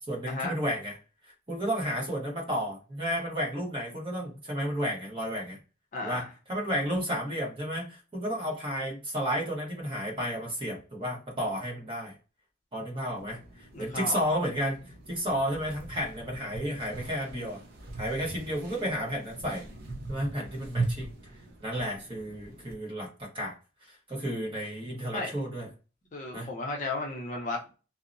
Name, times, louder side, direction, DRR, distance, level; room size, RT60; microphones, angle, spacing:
voice 1, 0.1-1.0 1.3-5.6 6.0-12.1 12.7-14.8 15.1-17.6 18.0-19.7 20.1-21.1 21.6-23.5 24.1-25.7 26.3-26.5, equal, 25° right, -2 dB, 1.0 m, -32 dB
voice 2, 5.9-6.3 13.7-14.2 25.1-25.3 26.1-27.8, left 2 dB, 40° left, 0 dB, 0.6 m, -34 dB
sound 1, 13.2-22.8, right 3 dB, 50° right, 0.7 m, -40 dB
2.7 x 2.0 x 2.5 m, 0.33 s
head